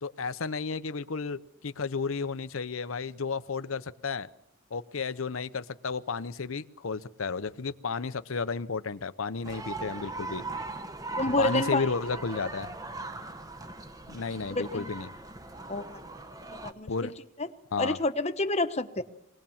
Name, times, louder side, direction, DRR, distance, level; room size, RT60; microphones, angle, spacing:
voice 1, 0.0-4.3 4.7-10.4 11.4-12.7 14.1-15.1 16.9-17.1 17.7-18.0, left 5 dB, 75° left, 13 dB, 0.7 m, -33 dB
sound 1, 9.4-16.7, right 2 dB, 15° right, 1.0 m, -39 dB
voice 2, 11.2-11.9 14.5-14.9 15.7-16.0 16.6-17.1 17.4-17.5 17.8-19.0, left 2 dB, 30° left, 9 dB, 1.1 m, -29 dB
22.5 x 19.0 x 7.2 m, 0.81 s
head